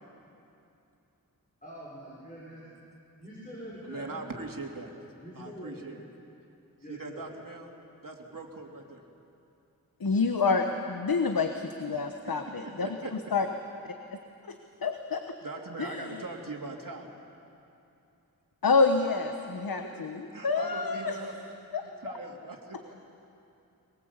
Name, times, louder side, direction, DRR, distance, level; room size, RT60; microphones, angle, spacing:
voice 1, 1.6-2.6 3.2-4.2 5.2-5.9 6.8-7.2, equal, 25° left, -7 dB, 6.0 m, -44 dB
voice 2, 3.8-4.9 5.4-6.0 6.9-7.7 8.0-9.0 12.2-13.1 15.4-17.1 19.6-21.4 21.8-23.0, right 3 dB, 65° right, 1 dB, 2.8 m, -41 dB
voice 3, 10.0-12.9 13.3-13.5 14.5-14.6 14.8-15.2 15.8-16.2 18.6-21.2 21.7-22.1, left 4 dB, 75° left, 6 dB, 1.2 m, -28 dB
23.5 x 21.0 x 8.1 m, 2.8 s
wide cardioid pair, 80°, 35 cm